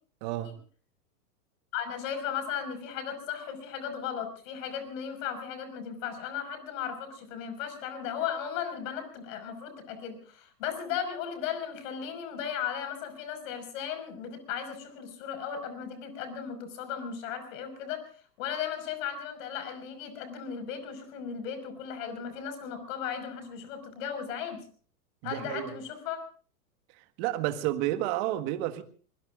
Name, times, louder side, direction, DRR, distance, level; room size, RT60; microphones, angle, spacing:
voice 1, 0.2-0.5 25.2-25.7 27.0-28.8, right 14 dB, 45° right, 1.7 m, -31 dB
voice 2, 1.7-18.0 18.4-24.6 25.2-26.2, left 8 dB, 55° left, 5.7 m, -36 dB
25.0 x 21.0 x 2.5 m
hypercardioid pair, 120°, 46 cm